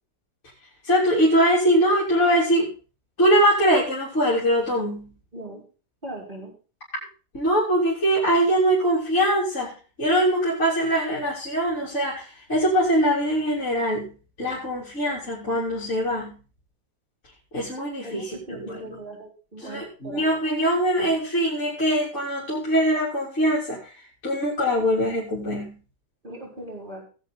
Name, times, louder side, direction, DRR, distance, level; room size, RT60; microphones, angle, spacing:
voice 1, 0.9-2.7 3.2-5.1 7.3-9.7 10.0-12.2 12.5-14.1 14.4-16.3 17.5-18.3 18.5-18.8 19.6-23.8 24.2-25.7, equal, 45° left, -7 dB, 3.9 m, -22 dB
voice 2, 6.0-6.5 18.0-20.3 26.2-27.0, right 1 dB, 30° right, -3 dB, 5.9 m, -39 dB
18.5 x 8.1 x 3.8 m, 0.35 s
omnidirectional pair, 1.8 m